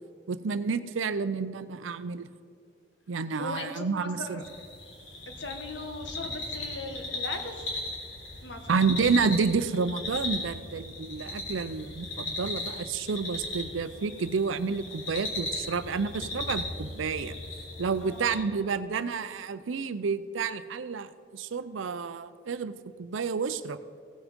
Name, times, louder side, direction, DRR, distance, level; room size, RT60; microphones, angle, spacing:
voice 1, 0.3-2.3 3.1-4.4 8.7-17.4 17.8-23.8, right 5 dB, 80° right, 13 dB, 0.5 m, -30 dB
voice 2, 3.4-4.4 5.4-7.7 8.4-8.7 18.0-18.3, left 2 dB, 65° left, 5 dB, 1.3 m, -38 dB
sound 1, 4.4-18.3, left 2 dB, 85° left, 3.5 m, -37 dB
16.5 x 6.1 x 5.2 m, 2.2 s
head